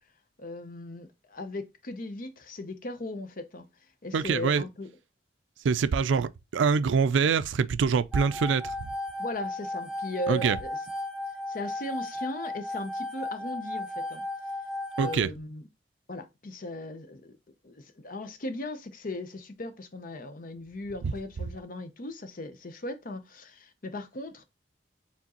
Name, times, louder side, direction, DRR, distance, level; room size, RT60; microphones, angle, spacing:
voice 1, 0.4-3.7 4.0-4.9 9.2-10.8 11.5-14.2 15.0-15.7 16.1-17.4 17.6-24.4, left 1 dB, 50° left, 0.7 m, -38 dB
voice 2, 4.1-4.6 5.6-8.9 10.3-10.6 15.0-15.3 21.0-21.1, right 5 dB, 85° right, 0.4 m, -25 dB
sound 1, 8.1-15.1, left 2 dB, 5° right, 0.8 m, -35 dB
4.6 x 3.6 x 2.9 m
head